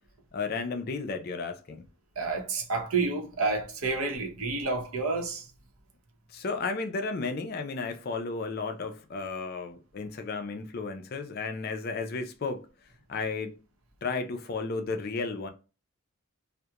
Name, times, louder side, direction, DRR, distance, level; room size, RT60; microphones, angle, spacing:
voice 1, 0.3-1.8 6.3-12.7 13.1-13.5 14.0-15.5, left 4 dB, 45° left, 0.4 m, -33 dB
voice 2, 2.2-5.5, right 3 dB, 75° right, 0.7 m, -29 dB
2.8 x 2.1 x 2.3 m
head